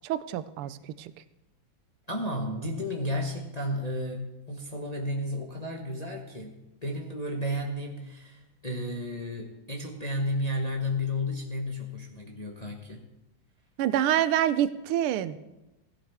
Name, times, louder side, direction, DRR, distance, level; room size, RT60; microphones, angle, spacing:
voice 1, 0.0-1.1 13.8-15.4, right 11 dB, 85° right, 14 dB, 1.5 m, -27 dB
voice 2, 2.1-13.1, left 1 dB, 30° left, 0 dB, 0.8 m, -33 dB
16.5 x 11.5 x 3.5 m, 0.96 s
omnidirectional pair, 2.3 m